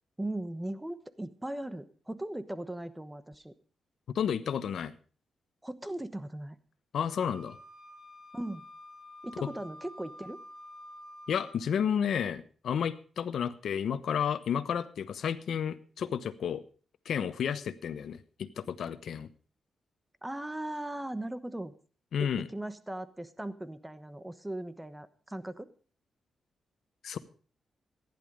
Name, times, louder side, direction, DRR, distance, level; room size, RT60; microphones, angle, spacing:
voice 1, 0.2-3.5 5.6-6.6 8.3-8.7 9.2-10.4 20.2-21.7 22.2-25.7, right 1 dB, 10° right, 13 dB, 1.1 m, -38 dB
voice 2, 4.1-4.9 6.9-7.6 9.4-9.5 11.3-16.6 17.0-19.3 22.1-22.5 27.0-27.2, left 8 dB, 70° left, 13 dB, 1.0 m, -31 dB
Wind instrument woodwind instrument, 7.1-11.6, left 1 dB, 50° right, 3.8 m, -49 dB
15.0 x 11.0 x 5.2 m, 0.40 s
cardioid pair, 115°, 0 cm